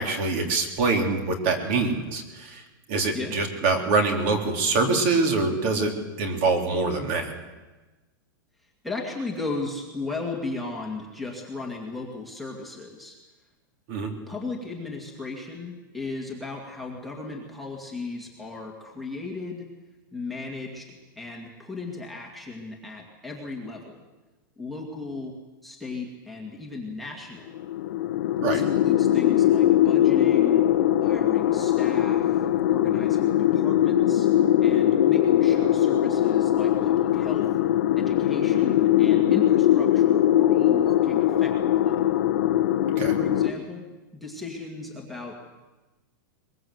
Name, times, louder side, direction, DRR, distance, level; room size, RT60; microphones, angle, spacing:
voice 1, 0.0-2.6 2.9-5.9 6.2-7.3 13.9-14.1 28.4-28.6 42.9-43.2, right 3 dB, 35° right, 3 dB, 3.6 m, -24 dB
voice 2, 8.6-13.2 14.3-19.7 20.1-24.0 24.6-25.4 25.6-27.5 28.4-30.7 31.0-34.3 34.6-37.5 37.9-42.0 43.1-43.9 44.1-45.4, left 3 dB, ahead, -3 dB, 2.2 m, -36 dB
sound 1, 27.5-43.5, left 12 dB, 60° left, 1.3 m, -21 dB
23.0 x 22.0 x 8.0 m, 1.2 s
supercardioid pair, 170°, 11 cm